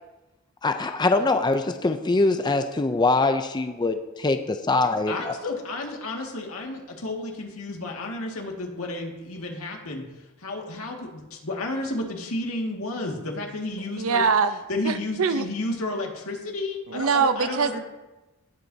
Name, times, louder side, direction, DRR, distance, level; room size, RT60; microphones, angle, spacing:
voice 1, 0.6-5.3, left 3 dB, 20° left, 8 dB, 0.4 m, -23 dB
voice 2, 5.1-10.0 10.4-14.2 14.7-17.8, left 2 dB, 80° left, 1 dB, 1.9 m, -32 dB
voice 3, 14.0-14.6 14.8-15.5 16.9-17.8, right 5 dB, 75° right, 11 dB, 0.7 m, -23 dB
18.5 x 7.5 x 2.7 m, 1.0 s
head